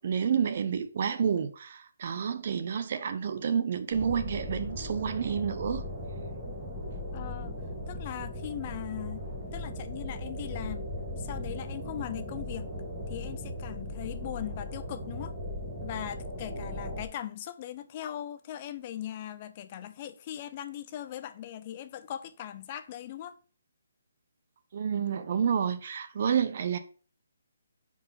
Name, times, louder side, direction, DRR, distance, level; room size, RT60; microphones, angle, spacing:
voice 1, 0.0-5.8 24.7-26.8, right 7 dB, 45° right, 0.8 m, -29 dB
sound 1, 3.9-17.0, left 1 dB, 10° right, 1.8 m, -38 dB
voice 2, 7.1-7.5 7.9-10.9 11.2-12.7 13.1-15.3 15.8-23.4, left 11 dB, 30° left, 0.5 m, -39 dB
5.3 x 4.7 x 5.7 m
hypercardioid pair, 165°, 0 cm